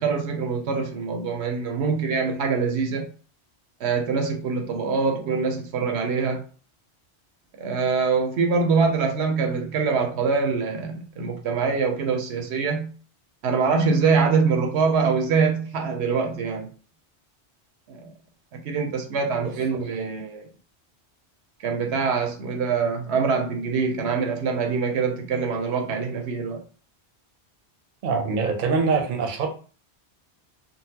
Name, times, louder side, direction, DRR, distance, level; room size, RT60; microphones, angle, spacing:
voice 1, 0.0-3.1 3.8-6.4 7.6-12.9 13.4-16.7 17.9-18.1 18.5-20.4 21.6-26.6, right 5 dB, 80° right, 0.9 m, -24 dB
voice 2, 28.0-29.5, right 4 dB, 55° right, 0.7 m, -24 dB
3.8 x 2.0 x 2.7 m
omnidirectional pair, 1.1 m